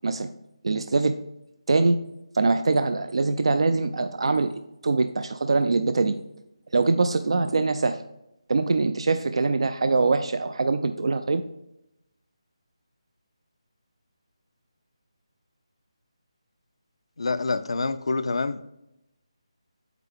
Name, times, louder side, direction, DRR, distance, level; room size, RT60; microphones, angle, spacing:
voice 1, 0.6-1.2 1.7-2.0 2.3-6.2 6.7-8.0 8.5-11.4, right 3 dB, 60° right, 9 dB, 0.4 m, -23 dB
voice 2, 17.2-18.6, left 3 dB, 65° left, 12 dB, 0.4 m, -26 dB
8.1 x 4.7 x 3.5 m, 0.86 s
figure-of-eight pair, 160°, 3 cm